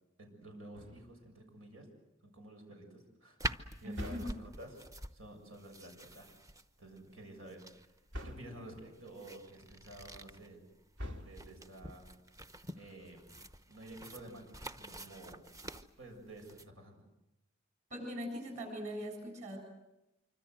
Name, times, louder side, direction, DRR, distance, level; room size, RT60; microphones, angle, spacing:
voice 1, 0.2-1.9 2.2-4.8 5.1-6.3 6.8-7.9 8.2-10.6 11.2-12.1 12.7-13.2 13.7-15.4 16.0-17.0, right 1 dB, 85° right, 3 dB, 7.0 m, -51 dB
sound 1, 0.7-1.4 3.9-4.9 8.1-8.7 11.0-11.8, left 1 dB, 65° right, 2.3 m, -45 dB
sound 2, 3.4-16.7, right 1 dB, 15° right, 0.9 m, -47 dB
voice 2, 3.8-4.3 17.9-19.6, equal, 35° right, 5 dB, 7.9 m, -41 dB
26.0 x 25.0 x 8.0 m, 0.92 s
head